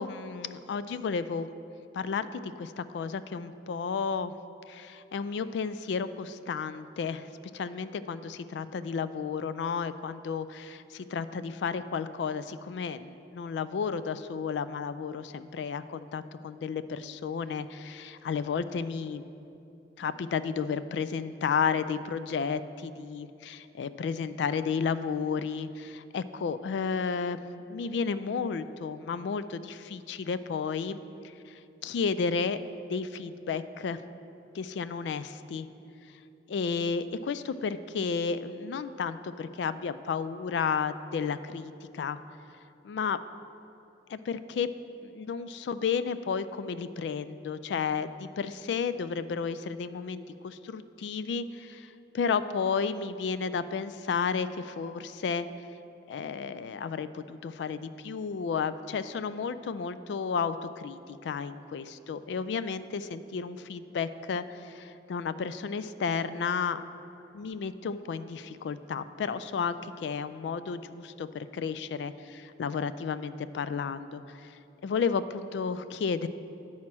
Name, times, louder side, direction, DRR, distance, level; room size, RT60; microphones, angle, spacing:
voice 1, 0.0-1.5 1.9-4.3 4.7-7.3 7.5-19.2 20.0-27.4 27.7-31.0 31.5-32.6 32.9-34.0 34.5-35.7 36.5-42.2 42.8-43.2 44.1-44.7 45.0-55.5 56.1-66.8 67.3-74.5 74.8-76.3, left 5 dB, 70° left, 13 dB, 0.3 m, -32 dB
9.6 x 4.3 x 6.0 m, 2.8 s
head